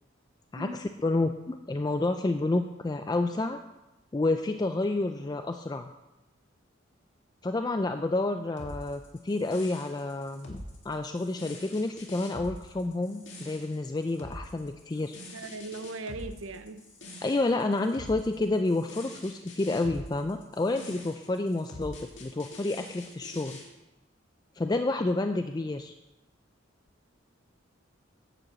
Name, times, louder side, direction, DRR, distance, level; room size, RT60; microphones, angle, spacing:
voice 1, 0.5-3.6 4.1-5.9 7.4-15.2 17.2-23.6 24.6-25.9, left 2 dB, 20° left, 7 dB, 0.3 m, -29 dB
sound 1, 8.6-23.7, left 1 dB, 65° left, 2.1 m, -45 dB
voice 2, 15.3-16.8, right 2 dB, 90° right, 10 dB, 0.7 m, -39 dB
10.5 x 5.3 x 7.5 m, 1.0 s
head